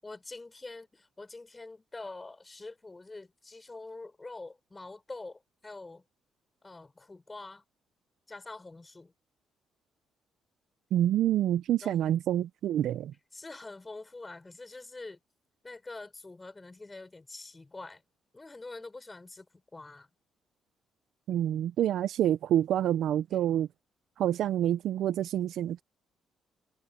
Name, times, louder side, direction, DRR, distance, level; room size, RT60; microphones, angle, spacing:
voice 1, 0.0-6.0 6.6-7.6 8.3-9.1 11.8-12.1 13.3-15.2 15.6-18.0 18.3-20.1, left 3 dB, 20° left, 6.6 m, -45 dB
voice 2, 10.9-13.1 21.3-23.7 24.2-25.8, right 11 dB, 75° right, 0.6 m, -27 dB
cardioid pair, 90°, 0 cm